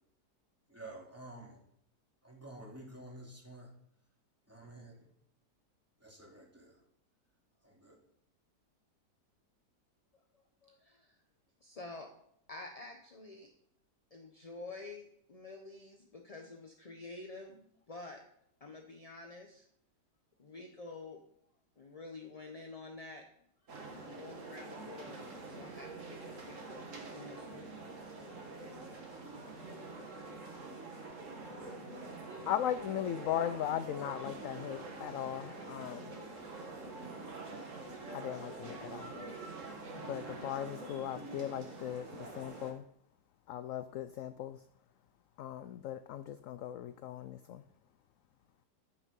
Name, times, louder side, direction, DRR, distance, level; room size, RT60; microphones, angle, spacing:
voice 1, 0.7-1.6 2.2-3.7 4.5-5.1 6.0-6.8 7.6-7.9, right 1 dB, 10° right, -3 dB, 2.8 m, -50 dB
voice 2, 10.1-11.2 11.6-12.1 12.5-13.5 14.1-18.2 18.6-19.6 20.4-21.2 21.8-23.2 24.1-25.2 25.5-26.9 27.1-27.7 31.8-31.9, left 3 dB, 30° left, 3 dB, 0.7 m, -49 dB
sound 1, 23.7-42.7, right 3 dB, 50° right, 1.9 m, -46 dB
voice 3, 32.5-36.2 38.1-39.1 39.9-42.8 43.5-44.6 45.4-47.6, left 10 dB, 70° left, 12 dB, 0.8 m, -38 dB
14.0 x 6.2 x 5.4 m, 0.72 s
omnidirectional pair, 1.8 m